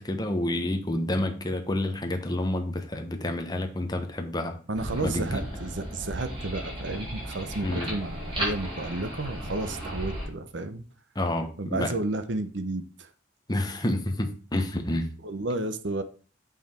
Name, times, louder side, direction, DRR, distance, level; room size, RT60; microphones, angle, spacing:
voice 1, 0.0-4.6 5.0-5.4 7.6-7.9 11.2-11.9 13.5-15.1, left 1 dB, 20° left, 5 dB, 1.0 m, -29 dB
sound 1, 4.7-10.3, equal, 25° right, 3.5 m, -35 dB
voice 2, 4.7-10.8 11.6-13.1 15.2-16.0, right 2 dB, 65° right, 10 dB, 0.9 m, -32 dB
7.5 x 5.6 x 4.4 m, 0.37 s
head